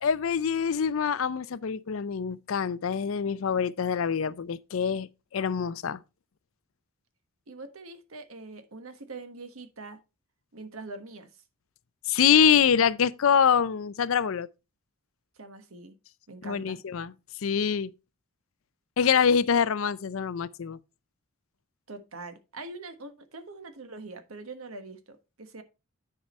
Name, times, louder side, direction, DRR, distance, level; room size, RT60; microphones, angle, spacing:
voice 1, 0.0-6.0 12.1-14.5 16.4-17.1 17.4-17.9 19.0-20.8, left 7 dB, 70° left, 0.5 m, -25 dB
voice 2, 7.5-10.0 10.5-11.3 15.4-16.0 16.3-16.8 21.9-25.6, right 3 dB, 80° right, 1.3 m, -43 dB
9.8 x 4.8 x 4.2 m
head